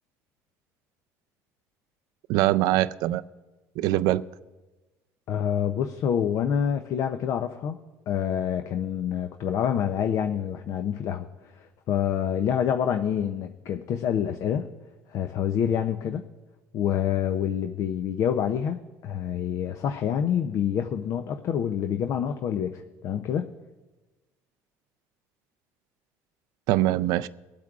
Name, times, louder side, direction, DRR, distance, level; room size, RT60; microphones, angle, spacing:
voice 1, 2.3-3.2 3.8-4.2 26.7-27.3, right 15 dB, 75° right, 15 dB, 0.4 m, -23 dB
voice 2, 5.3-7.8 8.1-14.7 15.1-16.2 16.7-23.5, left 8 dB, 55° left, 8 dB, 0.5 m, -27 dB
23.0 x 8.4 x 2.4 m, 1.2 s
cardioid pair, 125°, 7 cm